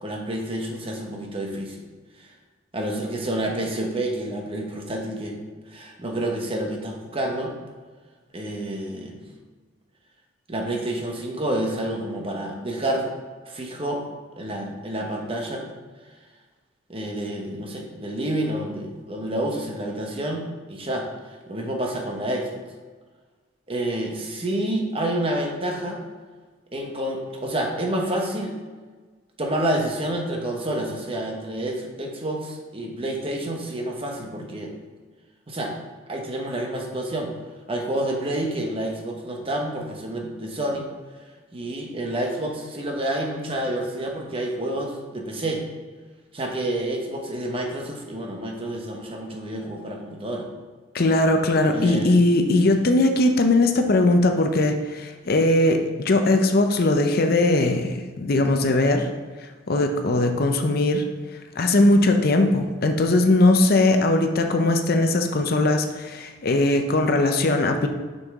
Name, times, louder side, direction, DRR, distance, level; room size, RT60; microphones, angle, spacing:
voice 1, 0.0-1.8 2.7-5.4 5.7-7.5 8.3-9.2 10.5-13.1 13.5-14.0 14.4-15.6 16.9-21.1 21.5-22.6 23.7-26.0 26.7-28.5 29.4-34.7 35.5-35.7 36.1-37.3 37.7-40.9 41.5-45.6 46.3-50.5 51.7-52.2, right 1 dB, 30° right, 1 dB, 1.0 m, -28 dB
voice 2, 50.9-59.1 59.7-61.0 61.6-67.9, left 2 dB, 50° left, 5 dB, 0.6 m, -20 dB
6.7 x 5.4 x 3.6 m, 1.4 s
head